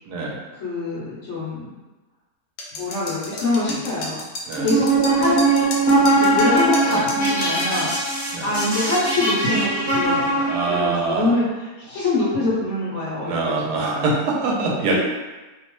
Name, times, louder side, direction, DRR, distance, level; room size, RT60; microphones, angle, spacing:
voice 1, 0.1-0.4 3.7-3.8 4.5-4.7 6.9-7.1 8.3-8.5 10.5-11.3 13.2-15.0, right 3 dB, 80° right, -2 dB, 1.1 m, -24 dB
voice 2, 0.6-1.7 2.7-4.2 4.6-5.7 6.2-7.9 8.4-14.1 14.9-15.0, left 2 dB, 65° left, -7 dB, 0.8 m, -25 dB
sound 1, 2.6-7.7, left 2 dB, 80° left, 1.2 m, -32 dB
sound 2, 4.5-10.9, right 2 dB, 10° right, 0.6 m, -20 dB
2.7 x 2.0 x 3.0 m, 1.1 s
omnidirectional pair, 1.7 m